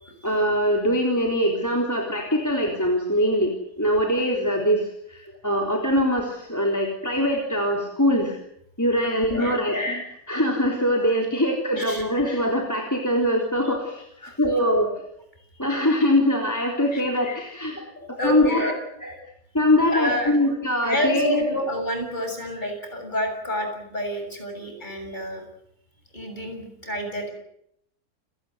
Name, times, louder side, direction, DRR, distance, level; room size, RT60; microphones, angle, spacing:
voice 1, 0.2-8.4 8.8-14.0 14.4-14.9 15.6-18.7 19.0-19.1 19.5-21.7, equal, 10° left, 0 dB, 3.7 m, -23 dB
voice 2, 9.0-9.6 11.8-12.0 14.2-14.4 15.6-15.7 16.9-17.0 17.9-18.7 19.9-20.4 20.8-25.4 26.1-27.3, left 1 dB, 30° left, 4 dB, 7.5 m, -29 dB
29.5 x 19.0 x 8.0 m, 0.74 s
omnidirectional pair, 1.6 m